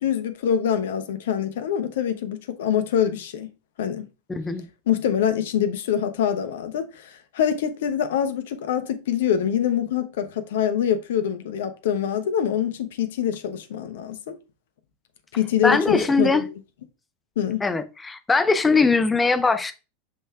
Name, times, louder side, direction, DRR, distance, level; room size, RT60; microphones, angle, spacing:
voice 1, 0.0-3.5 3.8-4.1 4.9-14.4 15.3-16.3 17.4-17.6, left 9 dB, 60° left, 0.9 m, -25 dB
voice 2, 4.3-4.6 15.6-16.4 17.6-19.7, left 4 dB, 15° left, 0.8 m, -21 dB
7.6 x 5.5 x 2.4 m
figure-of-eight pair, 85°, 0 cm